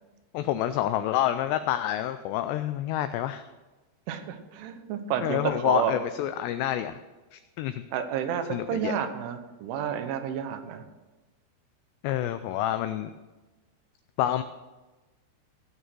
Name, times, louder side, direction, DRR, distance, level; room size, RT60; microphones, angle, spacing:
voice 1, 0.3-3.5 5.2-6.9 7.3-7.8 8.5-9.0 12.0-13.1 14.2-14.4, left 12 dB, 90° left, 10 dB, 2.4 m, -28 dB
voice 2, 4.1-5.9 7.9-10.8, right 9 dB, 85° right, 8 dB, 3.5 m, -30 dB
17.0 x 6.4 x 6.1 m, 1.2 s
omnidirectional pair, 5.4 m